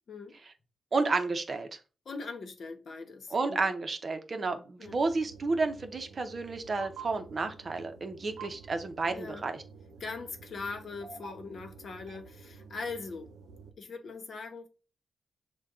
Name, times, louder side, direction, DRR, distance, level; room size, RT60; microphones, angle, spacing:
voice 1, 0.9-1.7 3.3-9.6, right 3 dB, 40° right, 0.7 m, -31 dB
voice 2, 2.0-3.7 4.8-5.0 9.0-9.4 10.0-13.3 13.8-14.7, left 4 dB, 60° left, 0.9 m, -41 dB
sound 1, 4.8-13.7, right 5 dB, 85° right, 0.7 m, -50 dB
6.2 x 2.2 x 3.6 m
cardioid pair, 100°, 0 cm